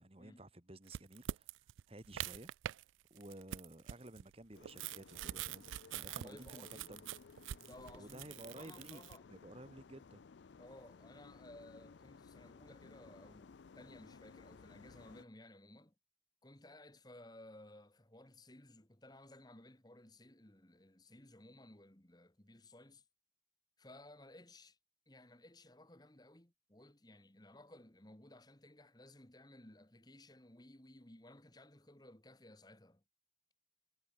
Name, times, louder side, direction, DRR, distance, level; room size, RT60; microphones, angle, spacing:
voice 1, 0.0-1.5 1.9-2.5 3.1-7.0 7.9-9.0 9.3-10.2, right 1 dB, 30° right, 1.6 m, -53 dB
sound 1, 0.9-2.8 3.2-9.2, right 11 dB, 85° right, 0.3 m, -45 dB
sound 2, 4.5-15.3, left 5 dB, 70° left, 0.5 m, -58 dB
voice 2, 6.2-7.0 7.6-9.3 10.6-15.9 16.4-23.0 23.8-24.8 25.1-33.0, left 1 dB, 20° left, 1.7 m, -58 dB
head